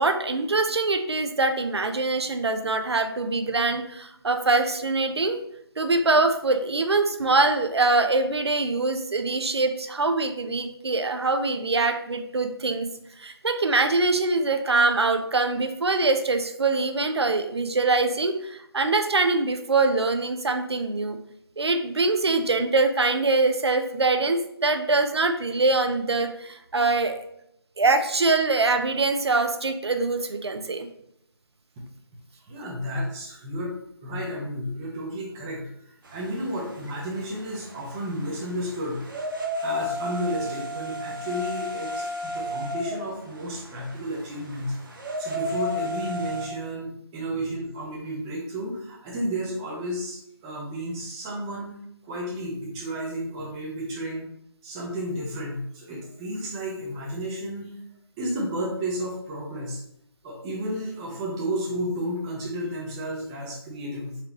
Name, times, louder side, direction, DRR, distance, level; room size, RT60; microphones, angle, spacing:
voice 1, 0.0-5.4 5.8-12.9 13.2-21.2 21.6-27.2 27.8-30.9, right 3 dB, 85° right, 7 dB, 0.5 m, -23 dB
voice 2, 32.5-39.1 39.6-44.8 45.2-51.8 52.0-54.3 54.6-57.7 58.2-59.8 60.2-64.2, equal, 10° right, -4 dB, 0.5 m, -32 dB
sound 1, 36.0-46.5, left 1 dB, 55° right, 0.8 m, -34 dB
4.0 x 3.1 x 2.9 m, 0.75 s
figure-of-eight pair, 155°, 13 cm